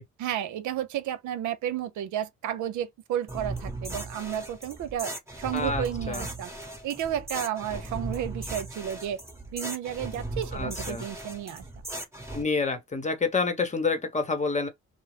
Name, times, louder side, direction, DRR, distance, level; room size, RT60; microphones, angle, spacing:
voice 1, 0.2-6.5 6.8-9.2 9.5-11.6, right 10 dB, 75° right, 0.5 m, -32 dB
sound 1, 3.3-12.4, right 2 dB, 10° right, 1.0 m, -37 dB
voice 2, 5.5-6.3 10.5-11.0 12.3-14.7, left 4 dB, 25° left, 0.9 m, -28 dB
2.4 x 2.0 x 3.1 m
cardioid pair, 90°, 30 cm